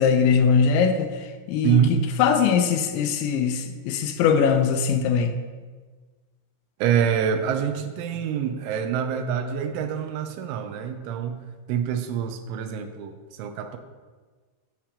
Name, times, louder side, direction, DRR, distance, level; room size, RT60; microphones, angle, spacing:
voice 1, 0.0-1.8 2.2-5.4, left 6 dB, 80° left, 7 dB, 2.9 m, -21 dB
voice 2, 1.6-2.0 6.8-13.8, right 8 dB, 90° right, 8 dB, 3.1 m, -26 dB
11.5 x 5.2 x 7.2 m, 1.4 s
omnidirectional pair, 5.5 m